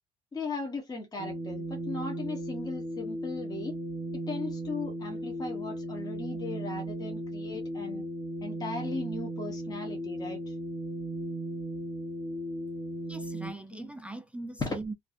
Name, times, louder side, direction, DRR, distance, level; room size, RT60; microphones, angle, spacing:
voice 1, 0.3-3.8 4.1-8.0 8.4-10.6 13.7-13.9 14.6-14.8, left 3 dB, 20° left, 0.7 m, -37 dB
sound 1, 1.2-13.5, right 1 dB, 45° right, 0.7 m, -36 dB
voice 2, 13.1-14.9, right 2 dB, 5° right, 0.3 m, -40 dB
2.5 x 2.3 x 2.4 m
cardioid pair, 110°, 17 cm